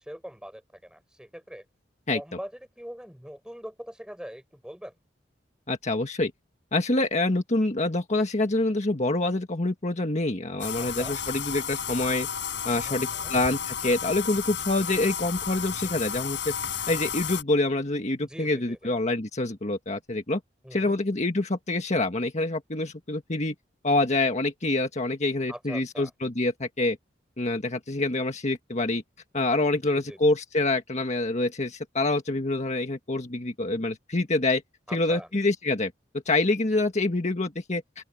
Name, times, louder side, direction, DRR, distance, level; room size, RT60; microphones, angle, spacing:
voice 1, 0.0-1.6 2.1-2.5 2.8-4.9 10.8-11.2 12.8-13.3 18.2-19.0 20.6-21.0 25.5-26.1 29.9-30.2 34.9-35.3, equal, 5° right, 4.4 m, -42 dB
voice 2, 5.7-6.3 6.7-12.3 12.6-16.5 16.9-20.4 20.7-23.5 23.8-27.0 27.4-29.0 29.3-34.6 34.9-35.9 36.2-37.8, left 2 dB, 40° left, 1.6 m, -26 dB
Bathtub (filling or washing), 10.6-17.4, left 8 dB, 75° left, 5.5 m, -32 dB
open air
head